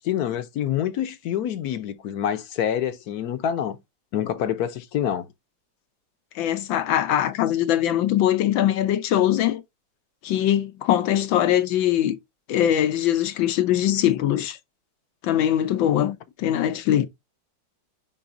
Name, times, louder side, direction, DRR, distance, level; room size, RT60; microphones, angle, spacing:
voice 1, 0.0-3.8 4.1-5.3, left 10 dB, 65° left, 1.1 m, -26 dB
voice 2, 6.3-9.6 10.2-12.2 12.5-14.6 15.2-17.1, left 11 dB, 90° left, 1.6 m, -22 dB
9.8 x 3.9 x 2.6 m
omnidirectional pair, 2.0 m